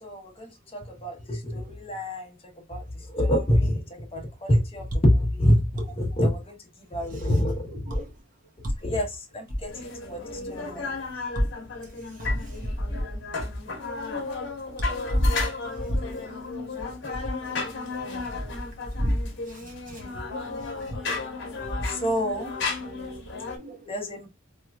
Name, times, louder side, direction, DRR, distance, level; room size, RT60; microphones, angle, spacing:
voice 1, 0.0-2.3 2.7-2.8 3.1-3.8 4.1-6.5 6.9-8.0 8.8-9.7 10.1-10.2 10.5-10.9 21.9-22.5 23.9-24.3, equal, 30° left, 1.0 m, -26 dB
voice 2, 7.6-8.1 11.3-11.5 12.2-12.3 15.1-15.3 15.8-16.1 19.0-19.2 19.9-20.0 22.8-24.1, equal, 40° right, 1.2 m, -28 dB
sound 1, 9.7-23.6, left 3 dB, 65° left, 1.1 m, -34 dB
3.5 x 3.0 x 2.2 m
head